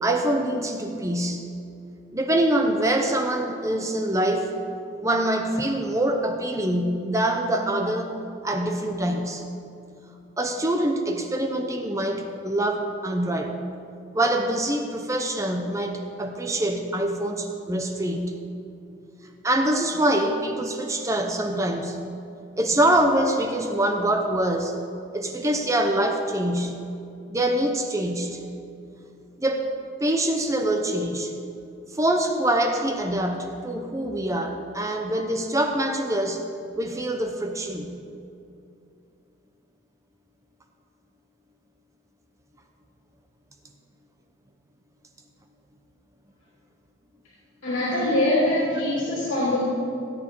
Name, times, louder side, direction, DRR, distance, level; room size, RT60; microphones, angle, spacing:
voice 1, 0.0-1.4 2.1-4.6 5.0-8.2 8.4-9.4 10.4-13.5 14.1-18.4 19.4-22.1 22.6-24.8 25.1-26.8 27.3-28.4 29.4-29.7 30.0-31.3 31.9-36.4 36.7-37.9, right 1 dB, 15° right, 4 dB, 0.7 m, -24 dB
voice 2, 47.6-49.6, left 1 dB, 80° left, -7 dB, 3.0 m, -23 dB
17.0 x 8.9 x 4.6 m, 2.6 s
head